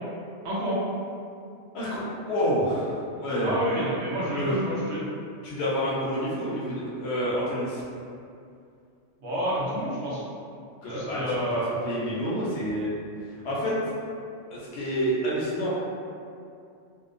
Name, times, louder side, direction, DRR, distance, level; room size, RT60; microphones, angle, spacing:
voice 1, 0.4-0.8 3.4-5.0 9.2-10.2 10.9-11.7, equal, 70° right, -8 dB, 1.0 m, -28 dB
voice 2, 1.7-3.5 4.4-4.6 5.4-7.8 10.8-12.9 13.4-13.7 14.5-15.7, equal, 65° left, -7 dB, 0.8 m, -28 dB
2.7 x 2.0 x 2.5 m, 2.4 s
omnidirectional pair, 1.3 m